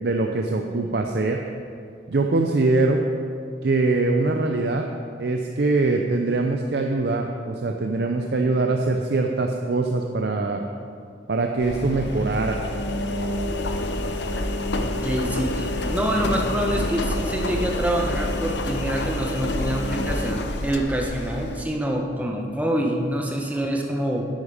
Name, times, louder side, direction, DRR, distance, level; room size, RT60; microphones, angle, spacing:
voice 1, 0.0-1.4 2.1-3.0 3.6-4.9 5.2-10.6 11.3-12.6, right 3 dB, 65° right, 3 dB, 0.6 m, -23 dB
Engine, 11.6-21.6, left 1 dB, 85° left, 0.8 m, -27 dB
voice 2, 14.8-24.3, right 1 dB, 10° right, 1 dB, 1.0 m, -26 dB
10.0 x 9.4 x 5.0 m, 2.3 s
head